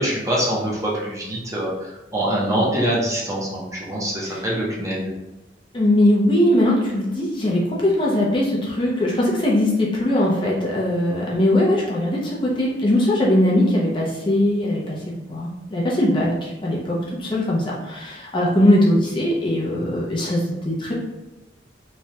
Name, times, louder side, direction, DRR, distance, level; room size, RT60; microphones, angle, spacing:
voice 1, 0.0-5.1, right 1 dB, 20° right, -5 dB, 0.6 m, -24 dB
voice 2, 5.7-15.0 15.3-20.9, left 1 dB, 30° left, -4 dB, 0.5 m, -20 dB
3.1 x 2.2 x 2.7 m, 1.0 s
head